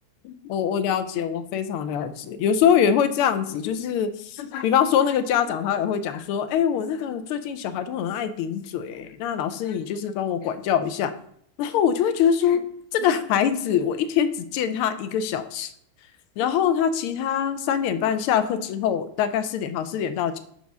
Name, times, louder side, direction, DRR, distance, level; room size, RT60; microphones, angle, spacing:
voice 1, 0.2-11.1 11.6-12.6 12.9-15.7 16.4-20.4, left 8 dB, 80° left, 11 dB, 1.5 m, -24 dB
5.3 x 4.7 x 6.2 m, 0.66 s
omnidirectional pair, 2.4 m